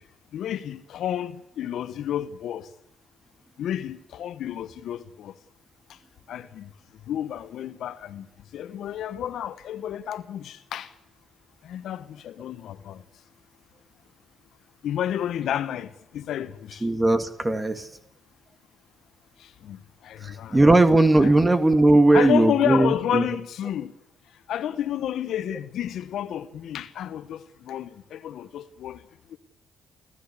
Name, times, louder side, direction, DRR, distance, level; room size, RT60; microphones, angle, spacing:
voice 1, 0.3-2.7 3.6-5.4 6.3-6.7 7.1-8.3 8.5-10.9 11.6-13.0 14.8-16.9 19.4-20.7 21.2-21.4 22.1-23.9 24.5-29.0 29.3-29.4, left 10 dB, 70° left, 1.0 m, -31 dB
voice 2, 16.8-17.9 20.2-23.3, right 2 dB, 20° right, 1.9 m, -18 dB
29.5 x 13.5 x 8.2 m
supercardioid pair, 55°, 0 cm